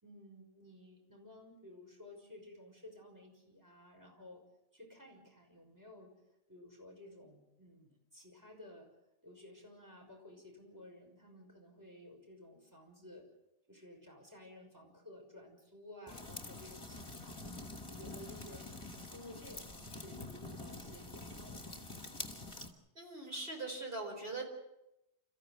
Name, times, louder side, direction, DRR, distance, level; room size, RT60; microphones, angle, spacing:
voice 1, 0.0-4.4 4.7-6.1 6.5-8.9 9.2-13.3 13.7-17.4 17.8-22.1, left 1 dB, 15° right, 2 dB, 6.1 m, -55 dB
sound 1, 16.1-22.7, left 2 dB, 25° left, 2.2 m, -46 dB
voice 2, 22.9-24.5, right 2 dB, 50° right, 1 dB, 4.9 m, -41 dB
29.0 x 15.0 x 7.8 m, 0.88 s
omnidirectional pair, 1.2 m